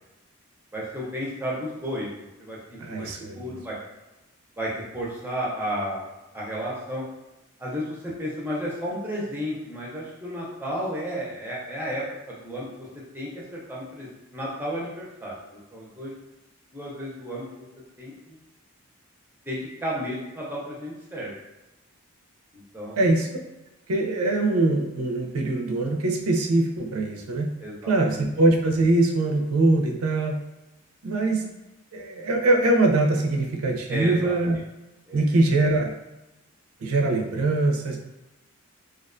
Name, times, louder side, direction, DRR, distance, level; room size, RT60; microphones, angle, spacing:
voice 1, 0.7-2.1 2.4-3.1 3.4-3.8 4.6-6.0 6.3-7.0 7.6-12.9 13.1-16.1 16.7-17.6 18.0-18.4 19.4-21.3 22.5-23.0 27.6-27.9 33.9-34.3 35.1-35.4, equal, 10° right, -5 dB, 0.5 m, -33 dB
voice 2, 2.8-3.6 23.0-23.3 23.9-27.5 27.9-30.4 31.0-31.5 31.9-34.6 35.1-35.9 36.8-38.0, right 2 dB, 75° right, 2 dB, 0.4 m, -22 dB
2.4 x 2.2 x 2.4 m, 1.0 s
head